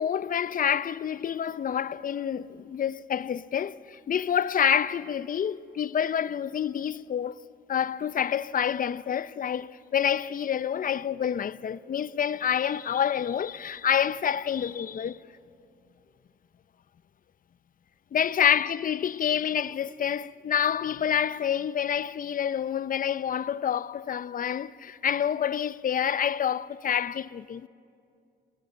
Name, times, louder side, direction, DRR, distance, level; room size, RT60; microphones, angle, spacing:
voice 1, 0.0-7.4 7.7-15.2 18.1-27.7, left 8 dB, 45° left, 0.6 m, -28 dB
28.5 x 16.0 x 8.5 m
cardioid pair, 90°, 20 cm